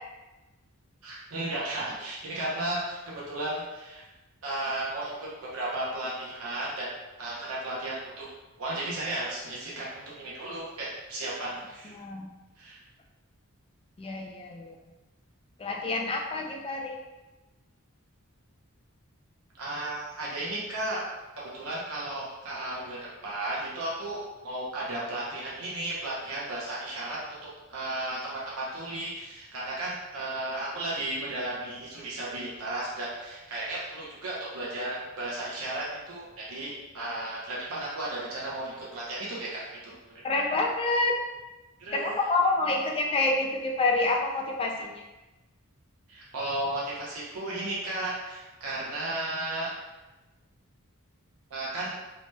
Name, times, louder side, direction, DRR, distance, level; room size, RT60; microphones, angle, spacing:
voice 1, 1.0-4.0 4.4-6.9 7.2-8.3 8.6-12.0 12.6-12.8 19.6-21.0 21.5-39.9 41.8-42.1 46.1-49.7 51.5-51.9, right 1 dB, 70° right, -6 dB, 0.7 m, -34 dB
voice 2, 11.9-12.3 14.0-14.7 15.6-17.0 40.2-41.2 41.9-45.0, left 2 dB, 25° left, 1 dB, 0.3 m, -27 dB
3.1 x 2.9 x 2.2 m, 1.1 s
head